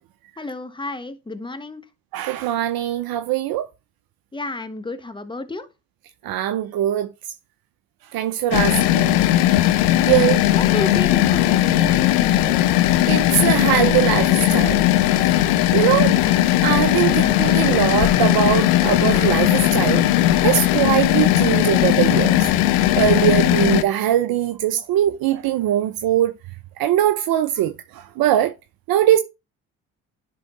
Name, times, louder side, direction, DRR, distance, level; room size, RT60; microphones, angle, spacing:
voice 1, 0.4-1.8 4.3-5.7 8.7-9.0 10.1-12.6 15.8-16.4, left 2 dB, 10° left, 1.2 m, -32 dB
voice 2, 2.1-3.7 6.2-7.1 8.1-9.3 10.1-10.4 13.1-15.4 15.7-16.1 16.6-20.1 20.4-22.4 22.9-26.3 26.8-28.5 28.9-29.2, right 12 dB, 60° right, 0.8 m, -21 dB
sound 1, 8.5-23.8, left 13 dB, 80° left, 0.7 m, -18 dB
10.5 x 3.7 x 4.1 m
hypercardioid pair, 55°, 41 cm